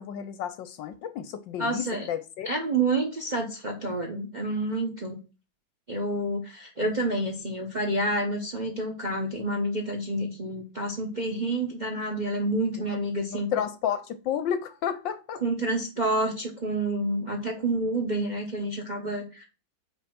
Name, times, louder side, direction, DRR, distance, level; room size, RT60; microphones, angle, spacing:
voice 1, 0.0-2.5 12.9-13.0 13.3-15.4, left 9 dB, 75° left, 1.2 m, -31 dB
voice 2, 1.6-2.1 2.4-5.2 5.9-13.5 15.4-19.5, right 2 dB, 30° right, 0.8 m, -29 dB
5.5 x 5.0 x 6.0 m
omnidirectional pair, 2.3 m